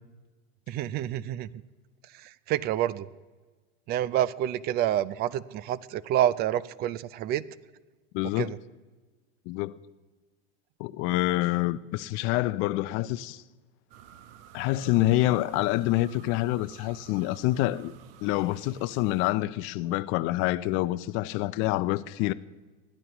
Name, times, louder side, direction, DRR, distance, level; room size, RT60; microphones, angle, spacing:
voice 1, 0.7-1.5 2.1-3.1 3.9-7.4 8.4-8.6, right 12 dB, 30° right, 0.4 m, -28 dB
voice 2, 8.1-8.5 9.5-9.8 10.8-13.4 14.5-22.3, left 17 dB, 40° left, 0.5 m, -27 dB
sound 1, 13.9-19.3, right 9 dB, 65° right, 1.1 m, -50 dB
20.5 x 14.0 x 3.0 m
supercardioid pair, 125°, 31 cm